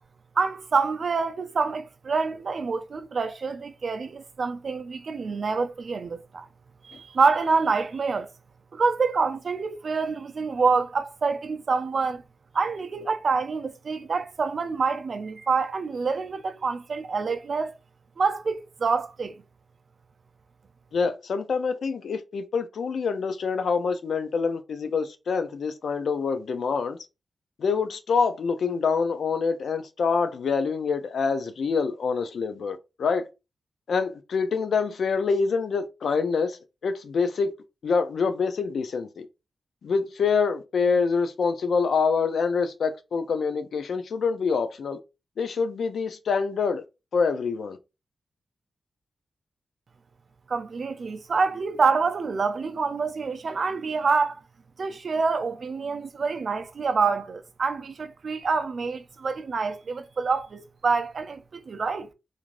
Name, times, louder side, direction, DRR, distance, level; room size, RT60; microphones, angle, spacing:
voice 1, 0.4-6.5 6.8-8.3 8.7-12.2 12.5-17.7 18.2-19.3 50.5-54.3 54.8-62.1, right 4 dB, 65° right, 0.4 m, -26 dB
voice 2, 20.9-27.0 27.6-33.3 33.9-37.5 37.8-39.3 39.8-45.0 45.4-46.8 47.1-47.8, left 5 dB, 85° left, 0.3 m, -26 dB
3.1 x 2.4 x 2.5 m
cardioid pair, 75°, 0 cm